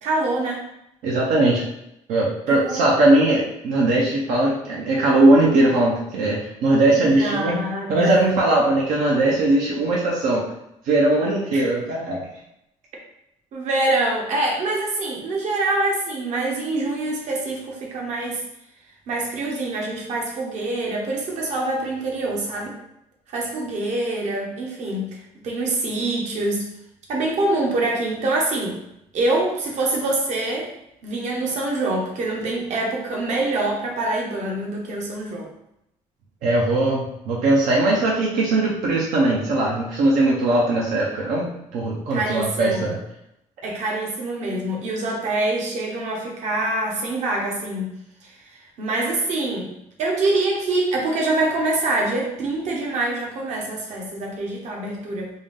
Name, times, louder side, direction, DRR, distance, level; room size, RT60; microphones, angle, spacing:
voice 1, 0.0-0.6 2.5-2.8 6.9-8.3 11.5-11.6 13.5-18.4 19.1-22.7 23.3-25.2 25.4-26.6 27.1-28.8 29.1-30.7 31.0-35.5 42.1-42.8 43.6-47.9 48.2-48.3 48.8-49.7 50.0-55.3, right 2 dB, 70° right, -1 dB, 1.0 m, -25 dB
voice 2, 1.0-1.6 2.1-10.4 10.8-12.2 36.4-41.5 41.7-43.0, right 2 dB, 90° right, -3 dB, 0.8 m, -19 dB
3.6 x 2.6 x 3.6 m, 0.81 s
cardioid pair, 120°, 13 cm